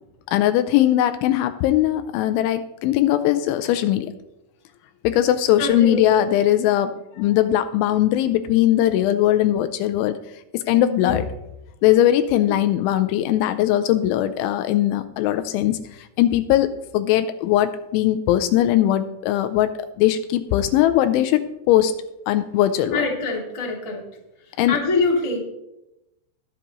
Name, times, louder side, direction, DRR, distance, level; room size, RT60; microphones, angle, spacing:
voice 1, 0.3-4.1 5.0-10.2 10.5-11.2 11.8-21.9 22.3-23.0 24.6-24.8, left 12 dB, 80° left, 10 dB, 2.9 m, -20 dB
voice 2, 5.6-6.1 11.0-11.1 22.9-24.0 24.7-25.4, left 3 dB, 20° left, -3 dB, 0.8 m, -24 dB
21.5 x 7.4 x 3.0 m, 0.88 s
omnidirectional pair, 5.7 m